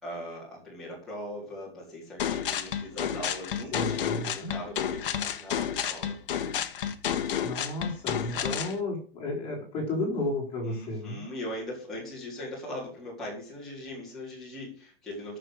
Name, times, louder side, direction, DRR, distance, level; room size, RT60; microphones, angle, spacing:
voice 1, 0.0-6.1 8.3-8.5 10.7-15.4, left 1 dB, ahead, -8 dB, 4.1 m, -40 dB
sound 1, 2.2-8.7, left 9 dB, 60° left, 1.5 m, -30 dB
voice 2, 3.7-4.5 7.4-11.2, left 2 dB, 15° left, -3 dB, 4.4 m, -33 dB
11.0 x 6.7 x 7.9 m, 0.41 s
hypercardioid pair, 170°, 30 cm